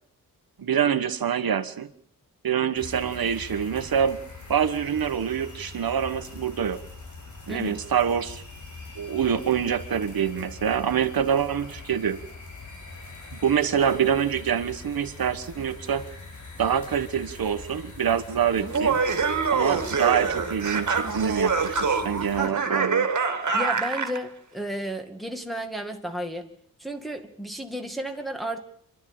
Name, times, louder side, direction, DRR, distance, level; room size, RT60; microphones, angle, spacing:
voice 1, 0.6-1.9 2.4-4.2 4.5-6.8 7.5-8.4 8.9-12.2 13.3-16.1 16.6-19.0 19.5-23.1, right 8 dB, 85° right, 10 dB, 1.4 m, -25 dB
sound 1, 2.7-22.5, left 3 dB, 55° left, 6.5 m, -42 dB
Laughter, 18.6-24.2, right 5 dB, 55° right, 2.2 m, -25 dB
voice 2, 23.5-26.5 26.8-28.6, equal, ahead, 3 dB, 2.2 m, -33 dB
27.5 x 12.0 x 8.9 m, 0.64 s
wide cardioid pair, 145°, 35 cm